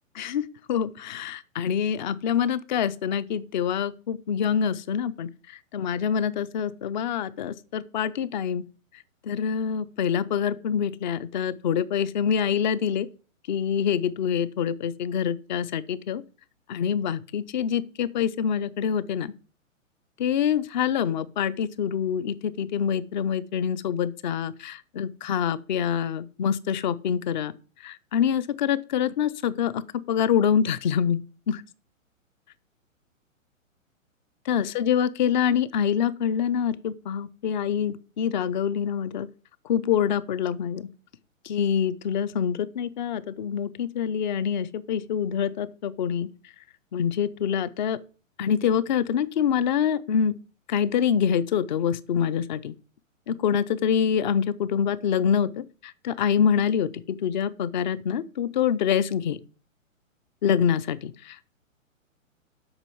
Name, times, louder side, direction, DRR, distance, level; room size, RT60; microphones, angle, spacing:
voice 1, 0.2-8.6 9.2-13.1 13.5-16.2 16.7-19.3 20.2-27.5 27.8-29.8 30.1-31.2 31.5-31.6 34.5-39.3 39.7-40.9 41.4-46.3 46.9-48.0 48.4-50.3 50.7-52.7 53.3-59.4 60.4-61.4, left 8 dB, 35° left, 0.7 m, -26 dB
8.1 x 6.2 x 7.0 m
figure-of-eight pair, 125°, 40 cm